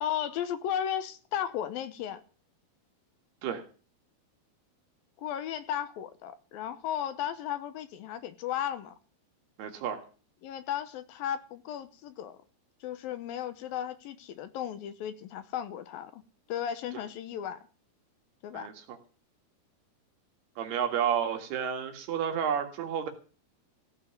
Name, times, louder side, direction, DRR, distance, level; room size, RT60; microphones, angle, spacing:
voice 1, 0.0-2.2 5.2-8.9 10.4-12.4 12.8-16.2 16.5-17.6 18.4-18.7, left 10 dB, 75° left, 2.6 m, -35 dB
voice 2, 9.6-10.0 18.5-19.0 20.6-23.1, right 8 dB, 85° right, 3.9 m, -31 dB
16.5 x 5.5 x 9.9 m
omnidirectional pair, 4.5 m